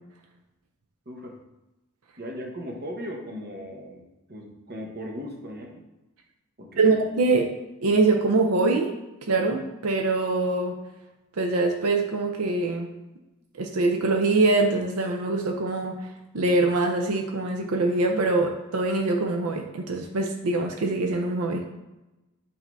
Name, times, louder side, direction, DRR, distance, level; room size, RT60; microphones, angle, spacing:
voice 1, 1.1-1.4 2.2-4.0 4.3-5.8 6.6-7.0, equal, 50° right, 1 dB, 1.0 m, -37 dB
voice 2, 6.8-7.5 7.8-8.9 9.3-10.8 11.4-12.9 13.5-16.1 16.3-21.6, right 3 dB, 90° right, 2 dB, 0.6 m, -23 dB
8.0 x 2.8 x 4.6 m, 1.0 s
head